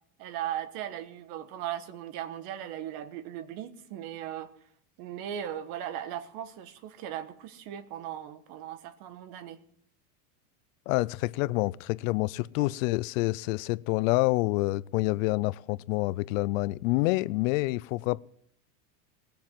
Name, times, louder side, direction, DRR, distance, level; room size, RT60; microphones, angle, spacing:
voice 1, 0.2-4.5 5.0-9.6 12.6-12.7, right 11 dB, 55° right, 1.5 m, -38 dB
voice 2, 10.9-18.2, left 21 dB, 65° left, 0.5 m, -27 dB
20.0 x 7.0 x 7.6 m
supercardioid pair, 130°, 43 cm